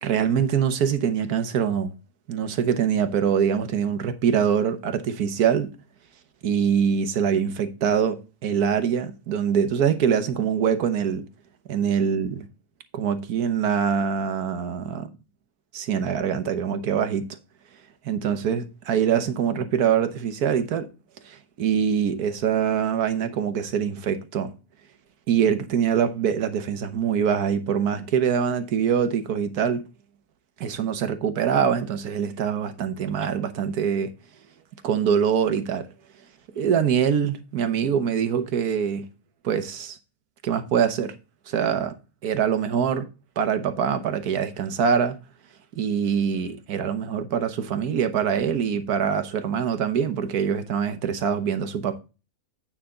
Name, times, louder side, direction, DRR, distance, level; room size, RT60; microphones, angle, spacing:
voice 1, 0.0-1.9 2.3-5.7 6.4-11.2 11.7-12.5 12.9-15.0 15.7-17.3 18.0-20.9 21.2-24.5 25.3-29.8 30.6-34.1 34.8-35.9 36.5-39.1 39.4-40.0 40.4-41.1 41.5-42.0 42.2-43.1 43.4-45.2 45.8-52.0, right 7 dB, 80° right, 1.5 m, -24 dB
9.2 x 5.8 x 3.7 m
omnidirectional pair, 1.6 m